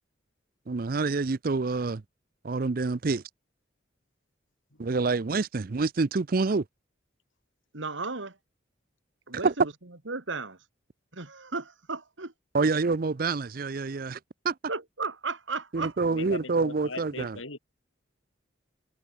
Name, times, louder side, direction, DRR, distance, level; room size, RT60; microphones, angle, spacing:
voice 1, 0.7-2.0 2.4-3.2 4.8-6.6 9.4-9.5 12.5-14.2 14.4-14.5 15.7-17.4, right 4 dB, 45° right, 0.5 m, -27 dB
voice 2, 7.7-8.4 9.3-9.7 10.1-10.6 11.1-12.3 12.6-12.7 14.7-16.0, right 4 dB, 75° right, 2.2 m, -34 dB
voice 3, 16.1-17.6, left 3 dB, 85° left, 6.2 m, -39 dB
head